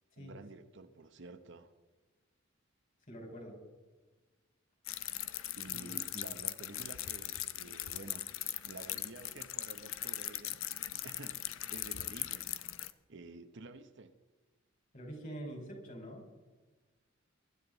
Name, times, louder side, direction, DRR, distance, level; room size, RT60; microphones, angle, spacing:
voice 1, 0.2-1.7 5.6-8.3 8.6-12.5 12.8-14.2, right 3 dB, 65° right, 9 dB, 1.0 m, -51 dB
voice 2, 3.1-3.6 5.7-6.1 14.9-16.2, right 1 dB, 45° left, 1 dB, 5.0 m, -45 dB
sound 1, 4.9-12.9, left 14 dB, 90° left, 0.7 m, -40 dB
23.5 x 12.5 x 4.0 m, 1.2 s
head